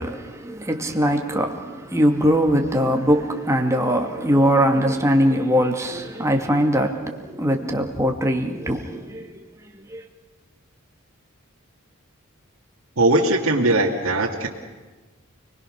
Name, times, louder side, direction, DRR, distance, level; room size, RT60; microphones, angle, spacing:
voice 1, 0.0-9.4 9.9-10.0, equal, 15° right, 2.3 m, -21 dB
voice 2, 13.0-14.5, right 2 dB, 75° right, 2.5 m, -19 dB
29.5 x 20.5 x 6.5 m
head